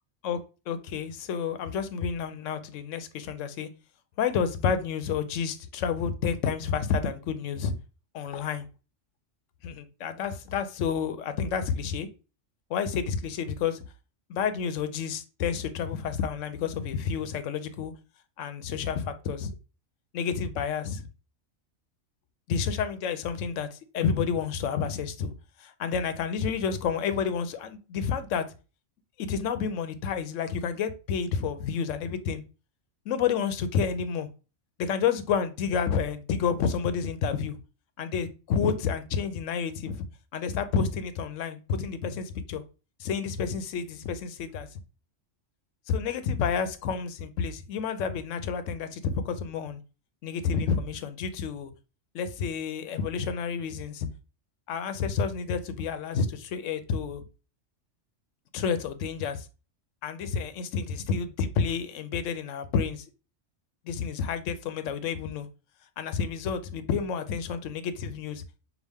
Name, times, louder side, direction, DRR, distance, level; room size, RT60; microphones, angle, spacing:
voice 1, 0.7-3.7 4.2-7.7 8.1-8.7 9.6-12.1 12.7-13.8 14.3-17.9 18.4-19.5 20.1-21.1 22.5-25.3 25.6-28.4 29.2-32.4 33.1-34.3 34.8-37.6 38.0-40.0 40.3-42.6 43.0-44.7 45.9-49.8 50.2-51.7 52.1-54.1 54.7-57.2 58.5-59.5 60.0-63.0 63.9-65.5 66.0-68.4, left 6 dB, 85° left, 1.0 m, -30 dB
5.9 x 2.2 x 3.4 m
omnidirectional pair, 1.3 m